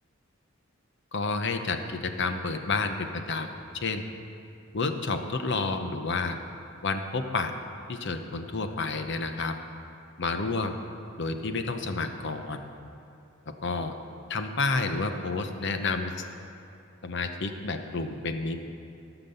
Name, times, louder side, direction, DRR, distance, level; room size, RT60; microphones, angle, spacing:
voice 1, 1.1-3.5 3.8-4.1 4.7-6.4 6.8-7.5 7.9-9.5 10.2-10.8 11.2-12.6 13.6-13.9 14.3-16.3 17.0-18.7, left 3 dB, 60° left, 7 dB, 0.8 m, -30 dB
15.5 x 6.0 x 6.9 m, 2.7 s
head